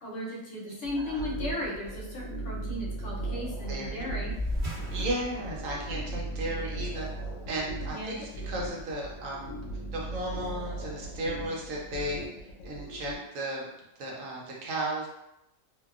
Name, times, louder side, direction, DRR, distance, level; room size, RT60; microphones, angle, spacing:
voice 1, 0.0-4.3 7.9-8.2, left 1 dB, 65° left, -5 dB, 1.0 m, -36 dB
sound 1, 0.8-13.1, right 2 dB, 85° left, 1.0 m, -37 dB
voice 2, 3.7-4.0 4.9-7.1 7.5-9.5 9.9-12.2 12.6-13.7 14.0-15.1, right 1 dB, 75° right, -2 dB, 1.0 m, -35 dB
sound 2, 4.3-9.2, left 1 dB, 45° right, 0.8 m, -39 dB
2.7 x 2.2 x 2.3 m, 0.85 s
omnidirectional pair, 1.4 m